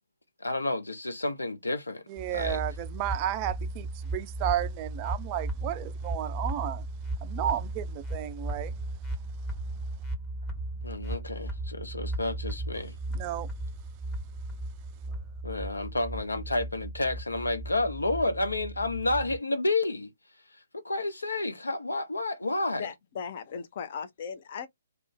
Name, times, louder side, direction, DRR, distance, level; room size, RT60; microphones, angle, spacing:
voice 1, 0.4-2.6 10.8-13.0 15.4-20.1 20.7-22.9, left 2 dB, 80° left, 0.8 m, -30 dB
voice 2, 2.1-6.8 7.2-8.7 13.1-13.5, right 12 dB, 30° right, 0.3 m, -33 dB
sound 1, 2.2-19.4, right 1 dB, 15° left, 1.0 m, -36 dB
voice 3, 22.8-24.7, left 6 dB, 45° left, 0.6 m, -37 dB
2.5 x 2.3 x 3.6 m
figure-of-eight pair, 125°, 0 cm